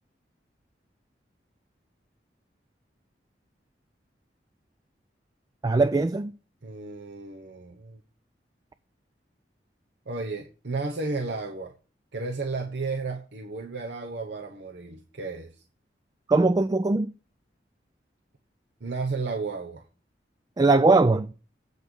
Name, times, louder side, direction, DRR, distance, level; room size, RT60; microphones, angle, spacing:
voice 1, 5.6-6.3 16.3-17.1 20.6-21.3, right 3 dB, 20° right, 0.3 m, -20 dB
voice 2, 6.6-8.0 10.1-11.7 12.1-15.6 18.8-19.8, right 3 dB, 70° right, 0.9 m, -33 dB
8.2 x 5.4 x 6.2 m
head